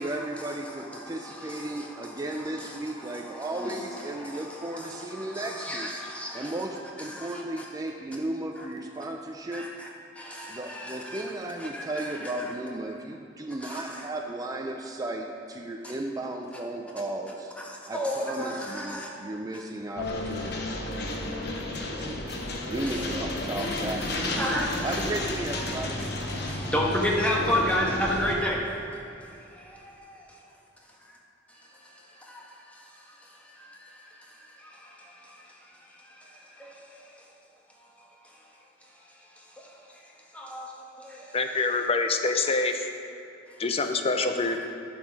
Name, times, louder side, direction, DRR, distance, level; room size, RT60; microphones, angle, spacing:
voice 1, 0.0-9.7 10.5-17.5 17.9-20.5 21.9-22.4 22.7-26.1, right 1 dB, 20° right, 2 dB, 0.4 m, -35 dB
voice 2, 1.0-2.1 2.5-6.6 7.1-7.6 8.6-8.7 9.5-9.9 10.1-11.2 11.6-12.3 13.6-13.8 17.6-19.1 24.3-24.9 26.3-28.7 29.6-29.9 31.6-33.2 33.4-35.5 36.0-37.2 39.6-39.7 40.3-40.7 41.0-41.4, left 1 dB, 5° left, -3 dB, 1.4 m, -33 dB
sound 1, 20.0-28.4, left 1 dB, 60° left, 1.1 m, -32 dB
voice 3, 41.3-42.9 43.6-44.7, left 3 dB, 30° left, 6 dB, 0.6 m, -26 dB
11.0 x 6.2 x 4.7 m, 2.8 s
head